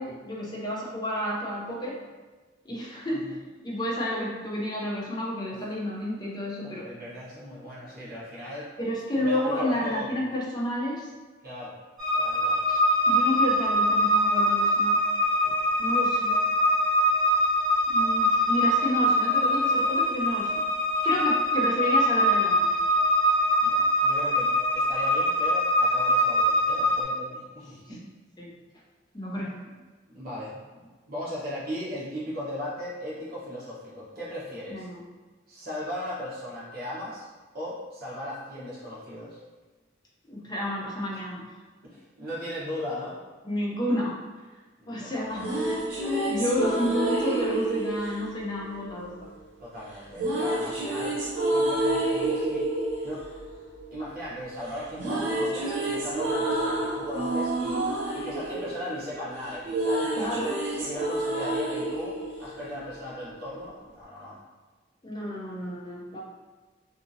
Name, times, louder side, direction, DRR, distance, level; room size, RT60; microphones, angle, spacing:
voice 1, 0.0-2.0 2.6-3.2 3.6-6.9 8.8-11.1 12.7-12.8 13.1-15.0 15.8-16.3 17.9-20.6 21.0-22.8 28.4-28.5 29.1-29.6 34.7-35.0 40.3-41.5 43.4-44.2 44.9-45.5 46.3-49.1 60.1-60.5 65.0-66.2, equal, 20° left, -4 dB, 0.6 m, -30 dB
voice 2, 6.6-8.7 9.2-10.1 11.4-11.8 12.2-12.6 23.6-28.0 30.1-30.8 31.1-34.9 35.5-37.3 37.5-39.4 41.8-43.2 44.8-45.5 49.6-51.2 51.5-52.7 53.0-53.2 53.9-57.9 58.1-64.4, left 1 dB, 50° right, -7 dB, 0.9 m, -37 dB
sound 1, 12.0-27.0, equal, ahead, 1.1 m, -23 dB
sound 2, 45.1-49.3 50.2-54.4 54.7-63.2, right 1 dB, 85° right, 0.8 m, -29 dB
2.8 x 2.4 x 2.6 m, 1.3 s
head